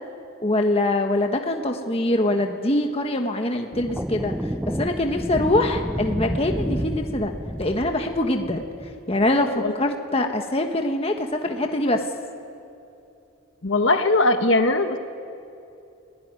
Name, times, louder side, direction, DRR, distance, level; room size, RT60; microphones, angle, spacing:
voice 1, 0.4-4.3 4.6-7.3 7.6-8.6 9.1-12.0, left 1 dB, 30° left, 4 dB, 1.5 m, -23 dB
sound 1, 3.7-9.3, equal, 5° right, 0.5 m, -30 dB
voice 2, 13.6-15.0, left 2 dB, 65° left, 6 dB, 1.5 m, -20 dB
30.0 x 17.0 x 9.7 m, 2.7 s
head